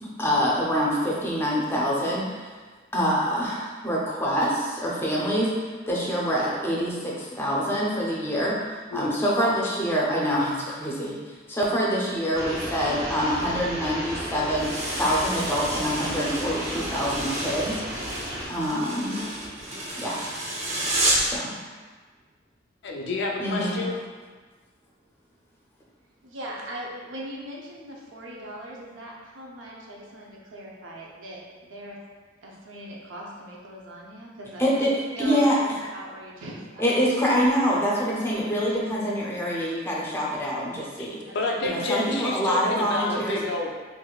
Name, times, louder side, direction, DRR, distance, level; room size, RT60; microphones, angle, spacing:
voice 1, 0.0-2.3 2.9-5.5 5.9-14.7 15.0-17.8 18.5-19.3 20.0-20.2 20.7-20.8 21.2-21.5 23.4-23.8 34.6-35.6 36.8-41.2 41.6-43.4, equal, 10° left, -5 dB, 0.5 m, -25 dB
voice 2, 8.9-9.5 22.8-23.9 41.0-41.1 41.3-43.7, left 2 dB, 60° left, 0 dB, 0.4 m, -29 dB
sound 1, 12.3-18.4, equal, 50° right, 1.4 m, -33 dB
sound 2, 14.6-21.4, right 1 dB, 35° right, 0.6 m, -30 dB
voice 3, 26.2-32.0 32.4-34.8 35.1-35.7 35.9-37.0 41.2-41.9, right 1 dB, 75° right, -3 dB, 0.6 m, -40 dB
4.0 x 2.5 x 2.3 m, 1.4 s
head